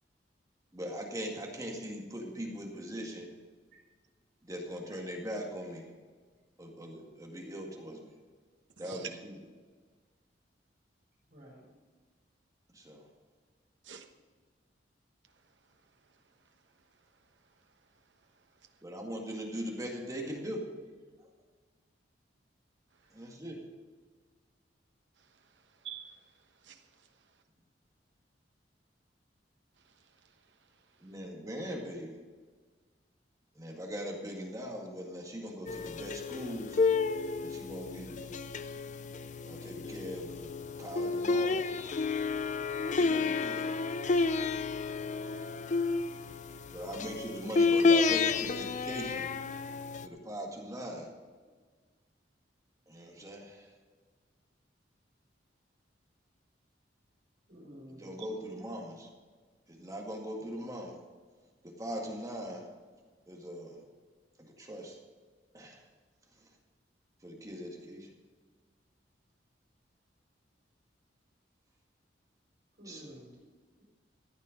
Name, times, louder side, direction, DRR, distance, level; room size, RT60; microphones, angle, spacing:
voice 1, 0.7-3.3 4.4-5.9 6.6-8.1 8.8-9.4 12.7-13.0 18.8-20.6 23.1-23.6 31.0-32.2 33.6-36.8 37.4-38.3 39.4-40.5 40.8-41.7 42.9-43.8 46.7-49.3 50.0-51.1 52.9-53.7 57.9-59.1 59.7-61.0 61.8-62.6 63.3-63.8 64.6-65.0 65.5-65.8 67.2-68.1 72.9-73.2, equal, 20° right, 0 dB, 2.0 m, -40 dB
voice 2, 8.8-9.1 13.8-14.0 25.8-26.2 26.6-26.8 44.8-46.1, right 8 dB, 85° right, 5 dB, 1.2 m, -47 dB
voice 3, 11.3-11.6 57.5-58.5 72.8-73.3, equal, 55° right, -3 dB, 4.5 m, -51 dB
sound 1, 35.7-50.1, left 4 dB, 45° left, 0.5 m, -31 dB
14.0 x 9.3 x 5.2 m, 1.5 s
head